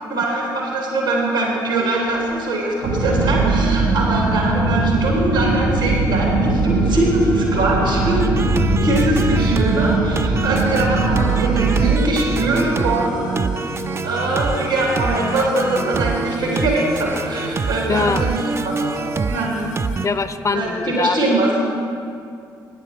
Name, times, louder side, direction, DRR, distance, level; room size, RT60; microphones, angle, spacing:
voice 1, 0.1-8.4 8.8-13.4 14.0-18.4 18.6-18.7 19.3-19.6 20.5-21.5, right 2 dB, 90° right, -3 dB, 2.6 m, -22 dB
sound 1, 1.8-2.4 2.8-4.0 4.6-5.7 6.6-20.1, left 4 dB, 75° left, 1.1 m, -35 dB
sound 2, 2.8-12.0, right 3 dB, 70° right, 2.2 m, -20 dB
sound 3, 8.2-20.1, right 5 dB, 25° right, 0.3 m, -26 dB
voice 2, 17.9-18.2 20.0-21.5, left 4 dB, 30° left, 12 dB, 0.6 m, -22 dB
12.0 x 9.4 x 4.4 m, 2.4 s
figure-of-eight pair, 40°, 10 cm